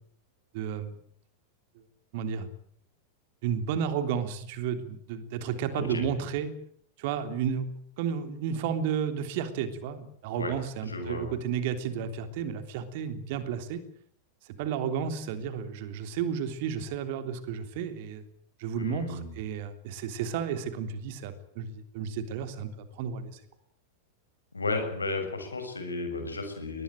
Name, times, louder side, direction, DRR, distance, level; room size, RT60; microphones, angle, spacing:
voice 1, 0.5-0.9 2.1-2.5 3.4-6.5 7.0-7.7 8.0-13.8 14.6-18.2 18.6-23.4, right 7 dB, 50° right, 9 dB, 3.4 m, -32 dB
voice 2, 5.7-6.0 10.3-10.5 10.9-11.3 18.8-19.3 24.5-26.8, left 3 dB, 80° left, 6 dB, 7.0 m, -33 dB
22.0 x 20.0 x 9.2 m, 0.63 s
figure-of-eight pair, 90°, 0 cm